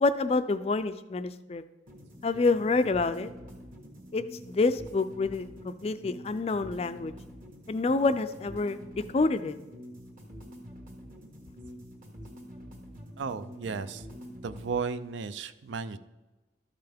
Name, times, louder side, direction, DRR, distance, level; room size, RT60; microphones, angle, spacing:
voice 1, 0.0-1.6 2.2-3.3 4.1-7.1 7.7-8.8 9.1-9.6, left 3 dB, 30° left, 12 dB, 0.3 m, -27 dB
sound 1, 1.9-14.8, equal, 45° right, 1.6 m, -46 dB
voice 2, 13.2-14.1 14.4-16.0, right 5 dB, 75° right, 13 dB, 0.4 m, -34 dB
13.0 x 5.7 x 3.4 m, 1.1 s
head